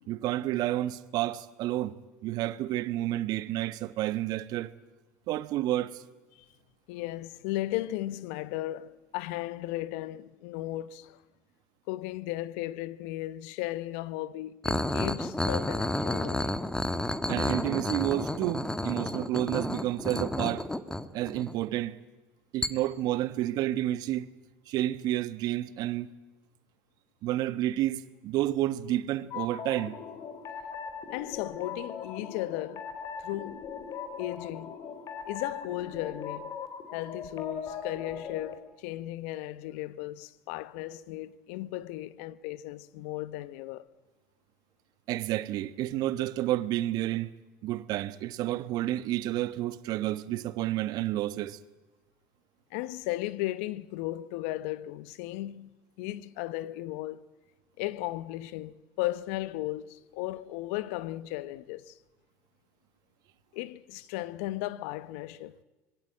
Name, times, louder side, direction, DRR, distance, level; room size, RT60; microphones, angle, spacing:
voice 1, 0.1-4.7 5.3-6.0 17.3-20.7 21.1-22.0 22.5-24.3 24.7-26.1 27.2-30.0 45.1-47.3 47.6-51.6, right 14 dB, 60° right, 1.2 m, -30 dB
voice 2, 6.9-11.2 11.9-16.6 31.1-32.9 33.2-33.7 34.2-34.7 35.3-36.6 36.9-43.9 52.7-57.2 57.8-62.0 63.5-65.6, left 16 dB, 75° left, 0.9 m, -36 dB
sound 1, 14.6-21.7 22.6-22.7, left 1 dB, 10° left, 1.5 m, -31 dB
sound 2, 29.3-38.6, left 6 dB, 55° left, 3.3 m, -40 dB
26.0 x 21.0 x 8.9 m
hypercardioid pair, 75°, 7 cm